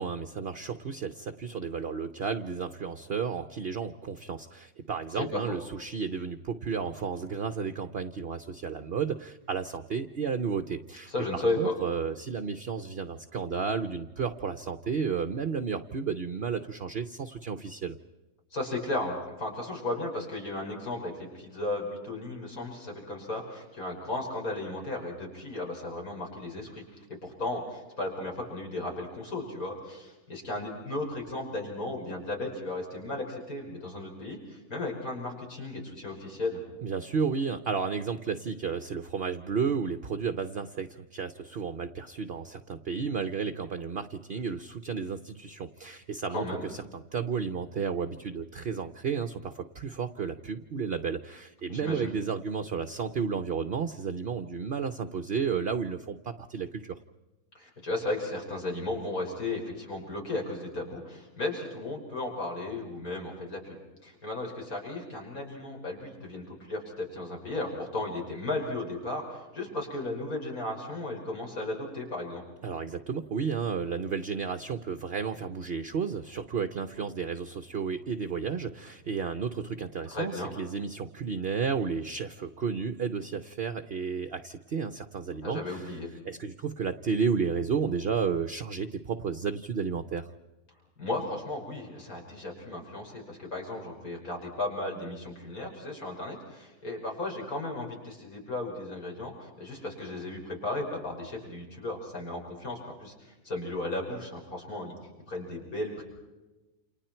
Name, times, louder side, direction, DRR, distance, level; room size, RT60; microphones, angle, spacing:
voice 1, 0.0-18.0 36.8-57.0 72.6-85.9 86.2-90.3, right 6 dB, 45° right, 8 dB, 0.9 m, -32 dB
voice 2, 11.1-11.7 18.5-26.8 27.2-36.6 46.3-46.7 51.7-52.1 57.5-72.4 80.1-80.5 85.4-86.1 91.0-104.9 105.3-106.0, left 2 dB, 60° left, 0 dB, 6.2 m, -35 dB
29.0 x 28.5 x 4.5 m, 1.1 s
omnidirectional pair, 1.7 m